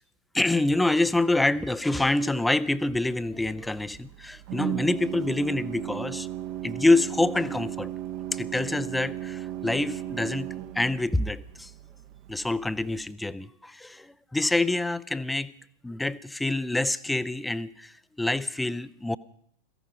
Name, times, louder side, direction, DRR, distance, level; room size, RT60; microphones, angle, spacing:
voice 1, 0.3-6.3 6.6-7.9 8.3-10.5 10.7-11.7 12.3-15.5 15.8-19.2, left 2 dB, 5° left, 0.5 m, -26 dB
Organ, 2.9-13.0, right 13 dB, 45° right, 0.9 m, -36 dB
16.5 x 15.0 x 5.1 m
figure-of-eight pair, 90°, 0 cm